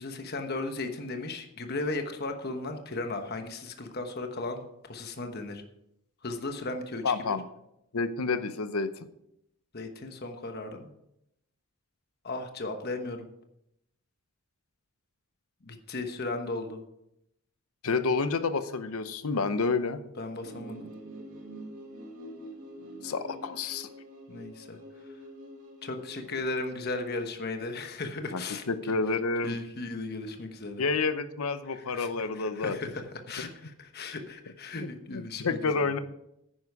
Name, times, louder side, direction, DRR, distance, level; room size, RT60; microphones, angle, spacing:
voice 1, 0.0-5.6 6.2-7.4 9.7-10.9 12.2-13.3 15.7-16.8 20.2-20.9 24.3-24.8 25.8-28.6 29.4-30.8 31.7-35.8, left 2 dB, 45° left, 5 dB, 1.2 m, -36 dB
voice 2, 7.0-7.4 7.9-8.9 17.8-20.0 23.0-23.9 28.3-29.6 30.8-32.8 33.4-33.5 35.1-36.0, left 4 dB, 75° left, 11 dB, 0.8 m, -29 dB
sound 1, 20.4-26.4, right 1 dB, 85° right, 2.6 m, -45 dB
10.0 x 9.8 x 4.8 m, 0.81 s
head